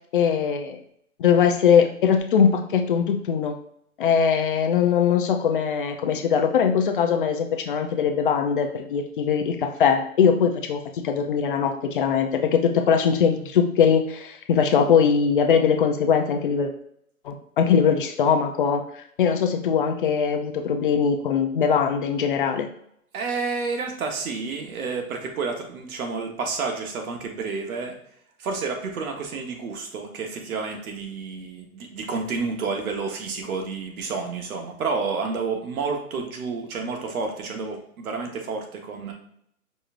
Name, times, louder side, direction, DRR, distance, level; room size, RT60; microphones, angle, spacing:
voice 1, 0.1-0.8 1.2-3.6 4.0-16.7 17.2-22.7, left 7 dB, 40° left, 5 dB, 0.4 m, -21 dB
voice 2, 23.1-28.0 28.4-39.1, right 4 dB, 70° right, 3 dB, 1.2 m, -30 dB
5.3 x 3.2 x 2.5 m, 0.71 s
hypercardioid pair, 150°, 44 cm